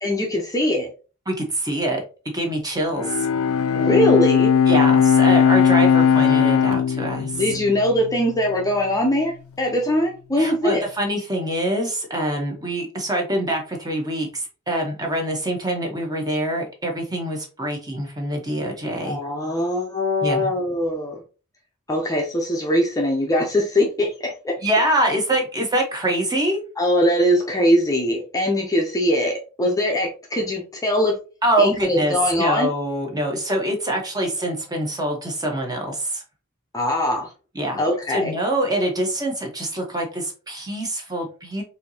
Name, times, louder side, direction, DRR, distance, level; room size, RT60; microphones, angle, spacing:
voice 1, 0.0-0.9 3.7-4.5 7.3-10.8 19.0-21.2 21.9-24.6 26.8-31.1 31.6-32.7 36.7-37.3 37.8-38.3, left 1 dB, 15° left, 1 dB, 0.7 m, -21 dB
voice 2, 1.3-2.0 2.3-3.3 4.7-7.4 10.4-19.2 20.2-20.5 24.6-26.6 31.4-36.2 37.5-37.8 38.1-41.6, right 1 dB, 20° right, 1 dB, 1.0 m, -24 dB
Bowed string instrument, 3.0-8.5, left 7 dB, 70° left, 0.5 m, -18 dB
4.4 x 2.8 x 2.7 m, 0.34 s
head